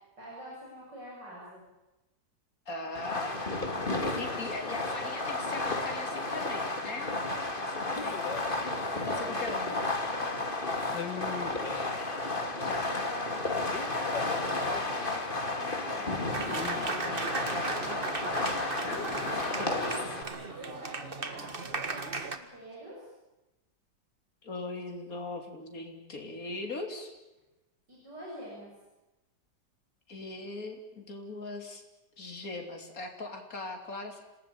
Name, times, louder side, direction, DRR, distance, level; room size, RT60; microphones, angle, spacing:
voice 1, 0.2-1.6 3.7-3.9 8.5-9.4 10.1-11.5 12.4-16.1 17.8-18.1 19.4-20.0 20.6-23.1 27.9-28.7, equal, 75° right, -5 dB, 8.3 m, -46 dB
voice 2, 2.7-3.4 4.2-7.1 7.6-8.2 8.9-9.8 12.7-13.0 17.0-17.9 18.2-18.5 18.8-19.1 19.5-20.0 24.4-27.1 30.1-31.8 32.2-34.2, left 2 dB, 50° left, 4 dB, 3.8 m, -40 dB
Fireworks, 2.9-20.2, left 2 dB, 30° left, 2.8 m, -32 dB
sound 1, 3.9-5.4 6.1-7.0 7.9-10.1 10.8-12.6 13.7-15.5 16.3-18.0 18.9-20.8, left 7 dB, 80° left, 2.1 m, -43 dB
Applause, 16.3-22.4, right 3 dB, 30° right, 1.8 m, -36 dB
27.5 x 19.0 x 8.8 m, 1.0 s
omnidirectional pair, 1.9 m